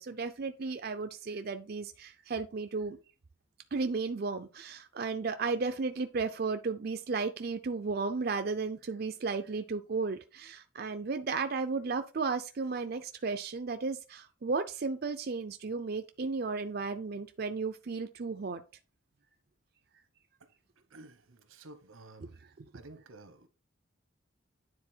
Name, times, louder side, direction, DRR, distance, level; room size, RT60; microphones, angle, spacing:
voice 1, 0.0-3.0 3.7-18.6 22.2-22.3 22.6-22.7, right 4 dB, 50° right, 0.5 m, -34 dB
voice 2, 20.9-22.4 22.7-23.5, right 2 dB, 85° right, 1.1 m, -52 dB
9.6 x 3.9 x 4.4 m
head